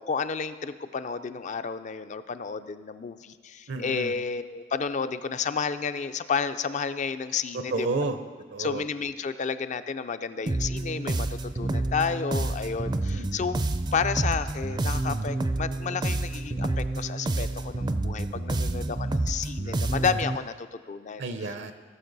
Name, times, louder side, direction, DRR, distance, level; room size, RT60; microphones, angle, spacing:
voice 1, 0.0-7.9 8.6-13.6 13.9-21.2, left 5 dB, 40° left, 11 dB, 0.4 m, -31 dB
voice 2, 3.7-4.1 7.5-8.2 8.5-8.8 13.1-13.5 21.2-21.7, right 3 dB, 70° right, 8 dB, 0.7 m, -31 dB
sound 1, 10.5-20.4, right 2 dB, 25° right, 0.4 m, -29 dB
17.5 x 7.2 x 4.0 m, 1.5 s
head